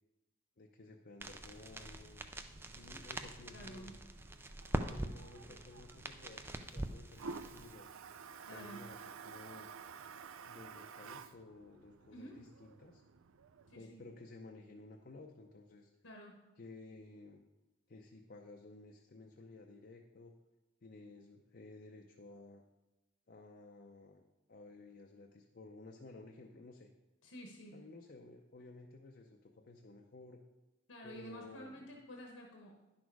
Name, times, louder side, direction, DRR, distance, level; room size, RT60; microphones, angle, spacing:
voice 1, 0.6-2.3 2.7-3.9 4.8-7.9 8.5-9.7 10.5-13.0 13.7-15.9 16.6-17.4 17.9-20.3 20.8-22.6 23.3-24.2 24.5-26.9 27.7-30.4 31.0-31.8, left 2 dB, 45° left, 2 dB, 0.6 m, -54 dB
sound 1, 1.2-7.7, right 1 dB, 10° right, 0.4 m, -44 dB
Toilet flush, 2.2-13.8, right 5 dB, 80° right, 0.5 m, -53 dB
voice 2, 3.5-4.0 8.4-8.9 12.1-12.4 13.7-14.0 16.0-16.4 27.2-27.8 30.9-32.8, equal, 70° left, 0 dB, 1.1 m, -51 dB
10.5 x 6.3 x 4.7 m, 1.1 s
head